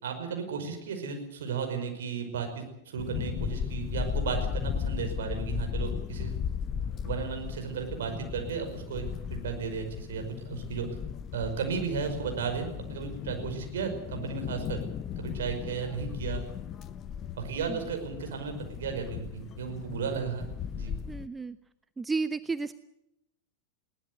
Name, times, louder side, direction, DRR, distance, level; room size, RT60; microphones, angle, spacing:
voice 1, 0.0-6.4 7.0-10.9 11.3-14.8 15.2-16.4 17.4-20.5 20.7-20.9, right 6 dB, 60° right, 4 dB, 5.4 m, -34 dB
sound 1, 3.0-21.3, left 8 dB, 30° left, 0.8 m, -36 dB
voice 2, 21.1-21.6 22.0-22.7, right 4 dB, 10° right, 12 dB, 0.8 m, -32 dB
21.5 x 18.0 x 8.1 m, 0.88 s
figure-of-eight pair, 90°, 0 cm